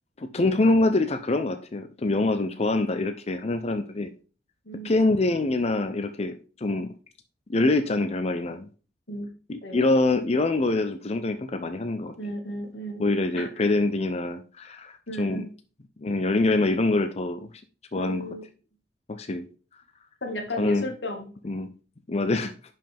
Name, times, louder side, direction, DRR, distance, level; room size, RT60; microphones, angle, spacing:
voice 1, 0.2-4.1 4.8-6.9 7.5-8.7 9.5-12.1 13.0-15.5 16.0-17.5 17.9-18.2 19.1-19.5 20.6-20.9 21.4-21.7 22.1-22.5, left 2 dB, 35° left, 8 dB, 0.6 m, -25 dB
voice 2, 4.7-5.1 9.1-9.3 9.6-9.9 12.2-13.1 13.3-13.5 15.1-15.5 17.9-18.5 20.2-21.3, left 1 dB, 85° left, 4 dB, 1.9 m, -34 dB
11.0 x 5.6 x 3.5 m, 0.36 s
head